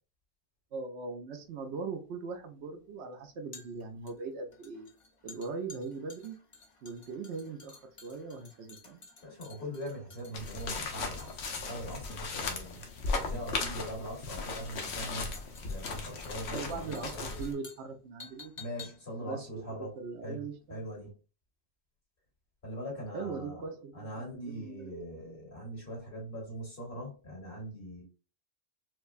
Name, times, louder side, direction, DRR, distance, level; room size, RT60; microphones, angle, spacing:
voice 1, 0.7-4.9 5.2-6.4 6.8-9.0 16.5-18.5 19.2-20.8 23.1-25.1, right 4 dB, 85° right, 1.0 m, -40 dB
sound 1, 1.4-20.6 20.9-21.0, left 4 dB, 35° left, 0.7 m, -54 dB
voice 2, 9.2-12.9 13.2-15.3 15.6-17.4 18.6-20.0 20.2-21.2 22.6-23.6 23.9-28.0, equal, 55° left, 2.3 m, -41 dB
sound 2, 10.3-17.5, left 4 dB, 75° left, 1.0 m, -37 dB
4.6 x 2.2 x 2.4 m
omnidirectional pair, 1.1 m